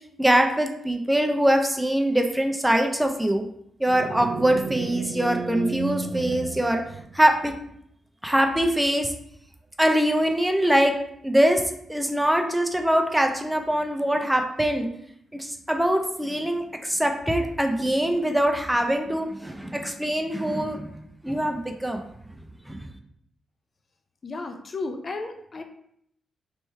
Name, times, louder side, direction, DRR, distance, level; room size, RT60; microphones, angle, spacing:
voice 1, 0.2-3.4 3.8-6.8 7.1-7.5 8.2-9.1 9.8-10.9 11.2-11.6 11.9-14.9 15.3-20.9 21.2-22.0 22.7-22.9, right 1 dB, 10° right, 3 dB, 0.6 m, -23 dB
sound 1, 3.9-7.5, right 5 dB, 70° right, 0.3 m, -33 dB
voice 2, 24.2-25.6, left 3 dB, 45° left, 5 dB, 0.5 m, -33 dB
3.3 x 3.0 x 4.6 m, 0.70 s
cardioid pair, 75°, 0 cm